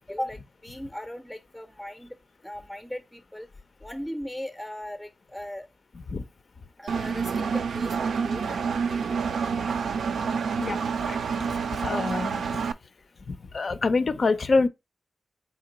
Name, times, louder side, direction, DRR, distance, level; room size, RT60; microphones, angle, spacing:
voice 1, 0.0-2.2 2.4-3.5 3.8-5.7 6.8-9.0, left 1 dB, 5° left, 0.5 m, -38 dB
Engine, 6.9-12.7, right 5 dB, 85° right, 0.3 m, -28 dB
voice 2, 10.6-11.2 11.5-12.4 13.3-14.7, left 3 dB, 60° left, 0.4 m, -26 dB
4.0 x 2.9 x 3.9 m
cardioid pair, 50°, 0 cm